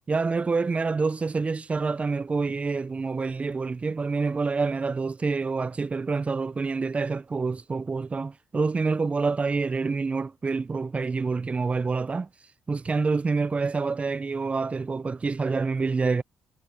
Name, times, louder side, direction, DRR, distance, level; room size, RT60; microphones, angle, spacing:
voice 1, 0.1-12.3 12.7-16.2, right 4 dB, 35° right, 1.1 m, -27 dB
hypercardioid pair, 45°, 4 cm